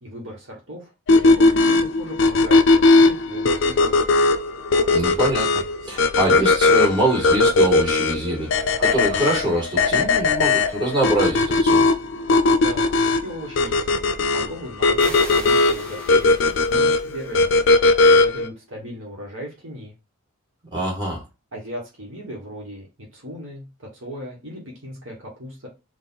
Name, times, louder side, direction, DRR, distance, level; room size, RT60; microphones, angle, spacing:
voice 1, 0.0-4.0 12.6-12.9 13.2-13.9 14.3-17.5 18.1-19.9 21.5-25.7, equal, 60° right, -2 dB, 1.5 m, -37 dB
sound 1, 1.1-18.5, left 3 dB, 55° left, 0.4 m, -18 dB
voice 2, 4.9-5.5 5.8-8.5 8.8-11.9 20.7-21.2, right 1 dB, 20° right, -5 dB, 1.9 m, -24 dB
sound 2, 15.0-17.6, left 1 dB, 5° left, 0.9 m, -39 dB
3.9 x 2.5 x 4.0 m, 0.26 s
head